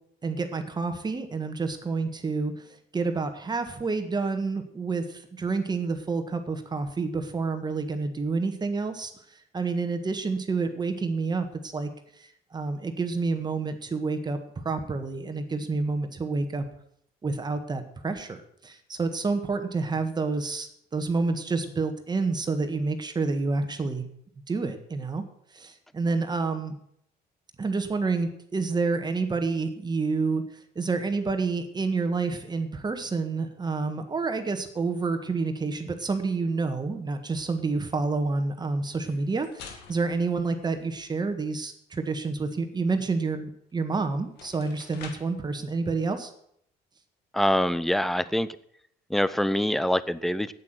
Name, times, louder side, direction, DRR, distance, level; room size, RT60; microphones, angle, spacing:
voice 1, 0.2-11.9 12.2-16.6 17.2-24.1 24.5-25.2 25.5-26.8 27.6-46.3, right 4 dB, 25° right, 7 dB, 1.6 m, -29 dB
sound 1, 38.9-41.3 43.7-43.8 44.2-45.4, left 6 dB, 85° left, 2.1 m, -48 dB
voice 2, 47.3-48.5 49.1-50.5, left 1 dB, ahead, 16 dB, 0.6 m, -24 dB
8.6 x 8.5 x 9.1 m, 0.69 s
cardioid pair, 110°, 17 cm